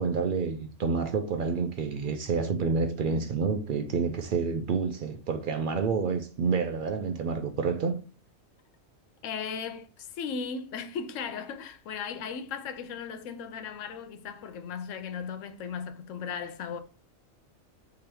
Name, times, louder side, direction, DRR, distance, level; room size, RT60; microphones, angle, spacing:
voice 1, 0.0-8.0, right 5 dB, 75° right, 0.4 m, -28 dB
voice 2, 9.2-16.8, left 6 dB, 70° left, 0.9 m, -37 dB
3.5 x 3.0 x 4.4 m
omnidirectional pair, 1.4 m